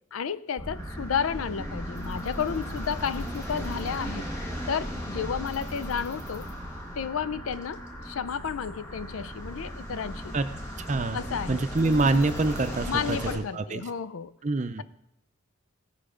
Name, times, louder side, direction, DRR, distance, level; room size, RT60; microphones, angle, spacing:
voice 1, 0.1-4.3 4.7-6.5 7.0-10.4 11.1-11.6 12.9-14.3, left 7 dB, 90° left, 0.5 m, -32 dB
sound 1, 0.6-13.4, equal, 15° left, 1.6 m, -36 dB
voice 2, 10.8-13.8 14.4-14.8, right 2 dB, 35° right, 0.5 m, -26 dB
16.5 x 5.7 x 5.0 m
head